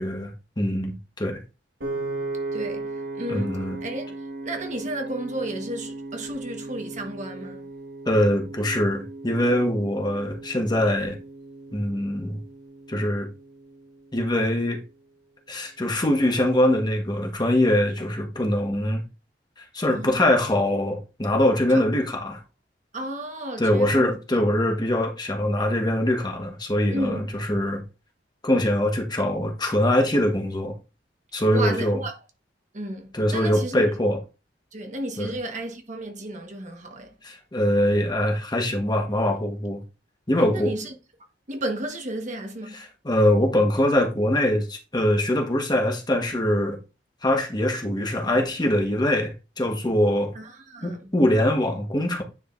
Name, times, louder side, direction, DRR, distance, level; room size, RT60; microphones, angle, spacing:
voice 1, 0.0-1.4 3.3-3.8 8.0-11.2 11.7-12.4 12.9-13.3 14.1-14.8 15.5-19.0 19.6-22.4 23.6-27.8 28.4-30.7 31.3-32.0 33.1-34.2 35.2-35.3 37.2-39.8 40.3-40.7 43.0-46.8 47.2-50.3 50.8-52.2, left 1 dB, 25° left, 1.3 m, -23 dB
Piano, 1.8-14.1, right 2 dB, 70° right, 1.9 m, -36 dB
voice 2, 2.5-4.1 4.4-7.7 19.9-20.3 21.7-21.8 22.9-24.2 26.9-27.3 31.5-32.2 32.7-33.8 34.7-37.1 40.5-41.0 41.5-42.7 50.3-51.1, right 1 dB, 45° right, 1.3 m, -33 dB
9.7 x 5.0 x 2.6 m
head